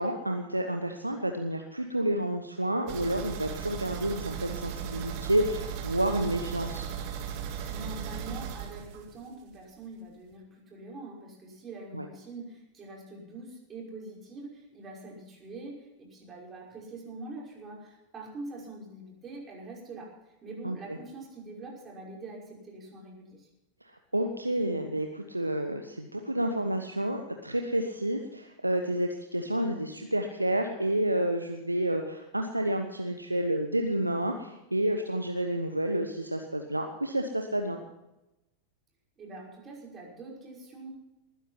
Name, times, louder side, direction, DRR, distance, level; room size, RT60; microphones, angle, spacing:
voice 1, 0.0-6.9 11.9-12.0 20.6-20.8 24.1-37.8, right 1 dB, 85° right, 4 dB, 1.1 m, -30 dB
sound 1, 2.9-9.5 9.8-9.9 10.3-10.4, right 8 dB, 45° right, 2.1 m, -37 dB
voice 2, 7.7-23.5 39.2-40.9, right 2 dB, 25° right, -2 dB, 5.7 m, -44 dB
20.5 x 10.0 x 5.8 m, 0.94 s
figure-of-eight pair, 90°, 0 cm